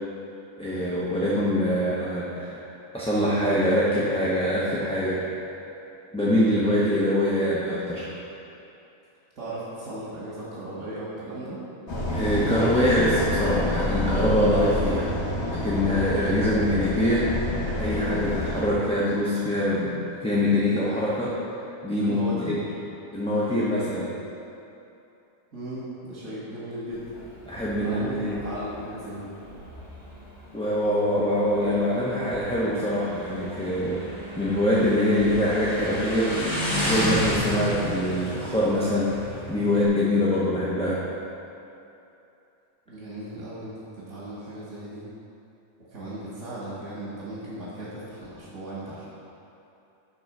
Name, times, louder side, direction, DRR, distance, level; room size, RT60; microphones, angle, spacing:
voice 1, 0.6-2.6 2.9-5.2 6.1-8.1 12.1-15.1 15.5-17.3 17.7-19.9 20.2-21.4 21.8-22.2 22.5-22.6 23.1-24.1 27.4-28.4 30.5-34.0 34.4-36.4 36.8-39.1 39.5-41.0, left 1 dB, 5° left, -8 dB, 0.8 m, -24 dB
voice 2, 9.4-11.6 22.0-22.6 25.5-27.1 27.8-29.3 42.9-45.1 45.9-49.1, right 1 dB, 90° right, -8 dB, 2.1 m, -36 dB
sound 1, 11.9-18.6, left 1 dB, 55° left, 1.9 m, -28 dB
Motorcycle, 26.9-39.9, left 1 dB, 15° right, 1.4 m, -33 dB
10.5 x 3.9 x 5.9 m, 2.8 s
omnidirectional pair, 1.4 m